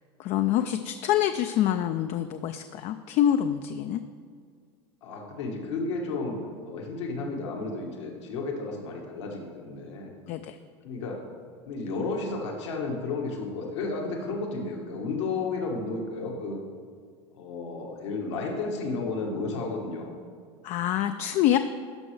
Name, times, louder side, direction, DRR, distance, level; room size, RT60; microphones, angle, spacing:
voice 1, 0.2-4.0 10.3-10.6 20.6-21.6, left 11 dB, 50° left, 8 dB, 0.4 m, -26 dB
voice 2, 5.0-10.2 10.8-11.2 11.7-16.6 17.3-20.2, left 3 dB, 85° left, 0 dB, 1.4 m, -32 dB
12.5 x 5.3 x 3.3 m, 2.1 s
hypercardioid pair, 95°, 14 cm